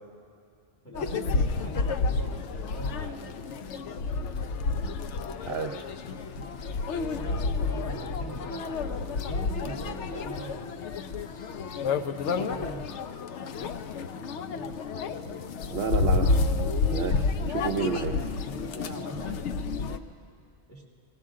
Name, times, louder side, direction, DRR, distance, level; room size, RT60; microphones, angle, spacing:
voice 1, 0.8-3.3 6.9-8.9 9.1-10.7 12.3-13.0 15.1-15.4 18.8-19.4 20.7-20.9, right 1 dB, 10° left, -3 dB, 1.8 m, -41 dB
sound 1, 0.9-20.0, left 4 dB, 75° left, 0.9 m, -30 dB
voice 2, 5.4-5.8 15.7-16.3 16.9-18.3, right 6 dB, 65° right, 3 dB, 0.8 m, -30 dB
19.5 x 17.5 x 3.7 m, 2.3 s
omnidirectional pair, 1.2 m